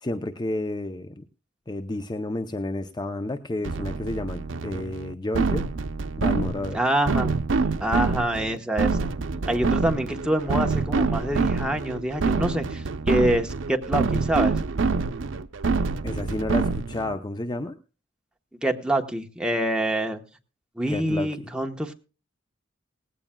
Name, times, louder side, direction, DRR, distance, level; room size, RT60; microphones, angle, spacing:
voice 1, 0.0-1.2 1.7-5.7 6.2-6.8 16.0-17.8 20.9-21.5, left 2 dB, 20° left, 8 dB, 0.5 m, -31 dB
sound 1, 3.6-17.1, right 4 dB, 90° right, 0.6 m, -26 dB
voice 2, 6.7-7.3 7.8-9.1 9.5-14.6 18.6-20.2 20.8-21.9, right 1 dB, 5° right, 4 dB, 1.1 m, -26 dB
18.5 x 16.0 x 2.2 m, 0.34 s
head